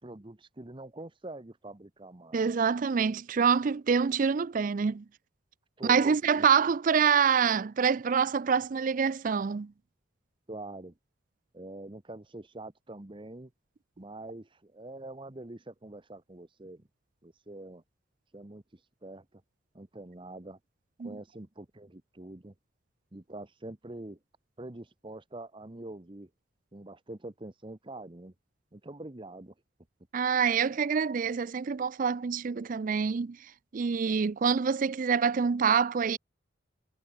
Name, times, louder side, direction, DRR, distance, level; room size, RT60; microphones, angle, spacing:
voice 1, 0.0-2.5 5.8-6.5 10.5-11.0 11.5-13.5 14.0-16.9 17.2-17.8 18.3-19.4 19.7-20.6 21.0-22.5 23.1-24.2 24.6-26.3 26.7-28.3 28.7-29.5, right 2 dB, 25° right, 1.0 m, -45 dB
voice 2, 2.3-5.0 5.9-9.7 21.0-21.1 30.1-36.2, right 6 dB, 45° right, 0.4 m, -26 dB
head